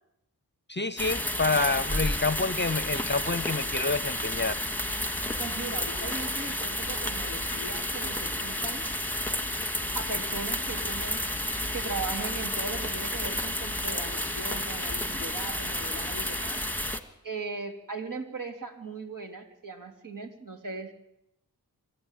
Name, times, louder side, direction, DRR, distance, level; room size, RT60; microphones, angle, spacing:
voice 1, 0.7-4.6, left 3 dB, 30° left, 16 dB, 0.8 m, -28 dB
sound 1, 1.0-17.0, left 1 dB, 5° left, 2.0 m, -31 dB
voice 2, 5.4-8.9 9.9-16.6 17.2-20.9, right 3 dB, 55° right, 3 dB, 3.8 m, -38 dB
25.0 x 14.0 x 9.4 m, 0.82 s
cardioid pair, 50°, 39 cm